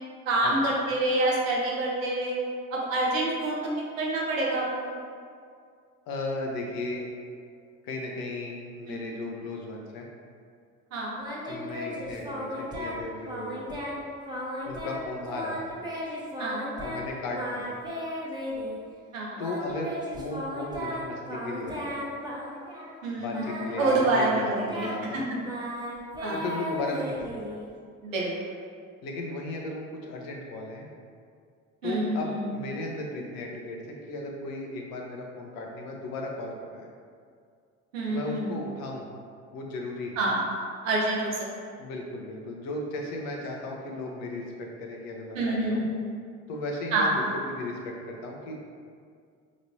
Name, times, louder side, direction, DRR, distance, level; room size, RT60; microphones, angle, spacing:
voice 1, 0.3-2.4 2.7-3.6 4.0-4.9 8.9-9.2 10.9-11.2 16.4-16.7 19.1-19.4 23.0-23.5 23.8-25.2 26.2-26.4 28.0-28.3 31.8-32.3 37.9-38.5 40.2-40.5 40.8-41.4 45.3-45.9 46.9-47.1, right 2 dB, 85° right, -4 dB, 0.8 m, -27 dB
voice 2, 6.1-7.1 7.8-10.1 11.5-13.6 14.7-15.8 16.8-17.8 19.4-22.0 23.2-25.2 26.3-27.5 29.0-30.9 31.8-36.9 38.1-39.1 39.5-40.2 41.8-45.9 46.5-48.5, left 2 dB, 60° left, 0 dB, 0.8 m, -36 dB
Singing, 11.2-13.0 13.3-14.0 14.3-15.0 15.3-17.0 17.3-18.8 19.4-23.0 23.3-27.7, equal, 10° right, 1.0 m, -35 dB
5.1 x 3.1 x 2.7 m, 2.2 s
hypercardioid pair, 55°, 39 cm